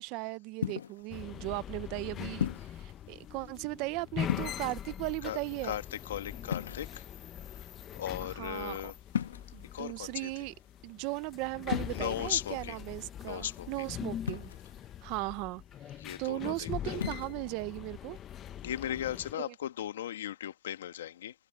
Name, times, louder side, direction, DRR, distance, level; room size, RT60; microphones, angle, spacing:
voice 1, 0.0-5.8 8.2-8.9 9.5-10.5 10.8-14.5 15.0-15.6 15.9-18.2 19.4-19.6, right 22 dB, 30° right, 0.7 m, -37 dB
sound 1, 0.6-1.1 2.4-2.8 4.2-4.9 6.5-7.2 9.1-9.7 11.7-12.0 14.3-14.8 16.9-17.3, left 8 dB, 85° left, 1.8 m, -35 dB
sound 2, 1.1-19.3, left 10 dB, 20° left, 1.0 m, -42 dB
voice 2, 6.1-6.9 8.0-8.9 9.7-10.3 11.9-12.8 13.2-13.7 16.0-17.0 18.6-21.3, left 11 dB, 60° left, 1.8 m, -36 dB
hypercardioid pair, 165°, 0 cm